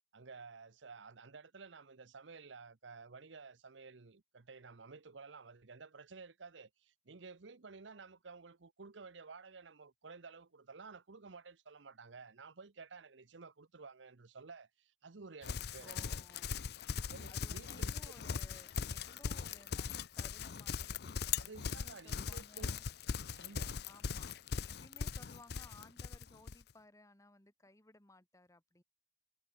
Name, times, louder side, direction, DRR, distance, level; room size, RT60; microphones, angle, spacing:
voice 1, 0.1-16.1 16.5-16.6 17.1-18.1 21.4-22.8 23.3-23.8, right 4 dB, 80° right, 0.9 m, -53 dB
Livestock farm animals working animals, 15.4-26.6, left 6 dB, 60° left, 0.6 m, -40 dB
voice 2, 15.8-16.6 17.3-22.8 23.8-28.8, left 2 dB, 15° left, 2.1 m, -61 dB
head